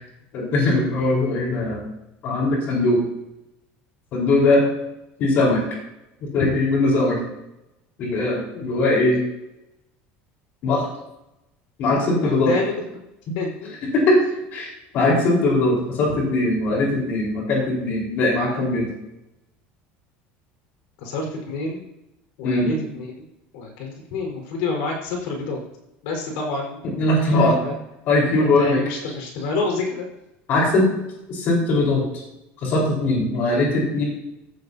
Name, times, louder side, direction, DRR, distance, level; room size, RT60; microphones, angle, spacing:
voice 1, 0.3-1.8 2.2-3.0 4.1-4.6 5.2-5.6 6.2-7.2 8.0-9.2 10.6-10.9 11.8-12.6 13.3-13.4 13.8-14.2 14.5-14.7 14.9-18.9 22.4-22.7 27.0-27.6 28.1-28.8 30.5-30.9 31.3-32.0 32.6-34.0, left 2 dB, 45° left, -2 dB, 4.5 m, -20 dB
voice 2, 12.2-12.8 13.3-13.7 21.0-21.8 22.4-23.3 23.5-25.6 26.0-26.8 27.3-27.7 28.4-30.1, left 3 dB, 80° left, 1 dB, 4.7 m, -28 dB
15.5 x 14.0 x 2.8 m, 0.89 s
cardioid pair, 170°, 5 cm